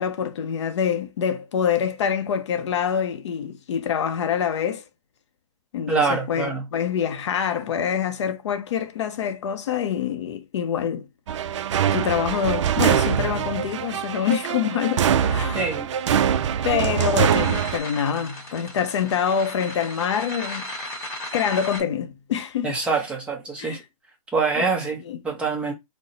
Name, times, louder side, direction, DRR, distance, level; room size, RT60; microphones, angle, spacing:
voice 1, 0.0-4.8 5.7-11.1 11.9-15.6 16.6-20.7 21.3-22.8 23.6-23.8 24.6-24.7 25.1-25.2, left 8 dB, 50° left, 0.5 m, -25 dB
voice 2, 5.9-6.6 15.5-15.9 22.6-23.8 24.3-25.7, right 4 dB, 5° right, 0.6 m, -25 dB
sound 1, 11.3-17.8, right 9 dB, 55° right, 0.4 m, -23 dB
sound 2, 15.2-21.8, left 1 dB, 15° left, 1.0 m, -36 dB
3.9 x 2.0 x 3.9 m
hypercardioid pair, 155°, 19 cm